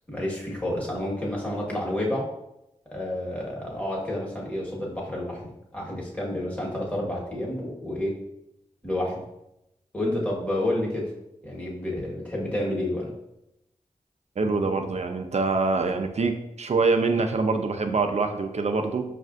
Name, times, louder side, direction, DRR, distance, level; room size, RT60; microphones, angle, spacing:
voice 1, 0.1-2.3 2.9-8.2 8.8-9.2 9.9-11.1 11.4-13.1, left 1 dB, 10° left, -4 dB, 1.3 m, -29 dB
voice 2, 14.4-16.3 16.6-19.0, right 3 dB, 55° right, 6 dB, 0.5 m, -24 dB
5.3 x 2.4 x 2.4 m, 0.86 s
cardioid pair, 45°, 13 cm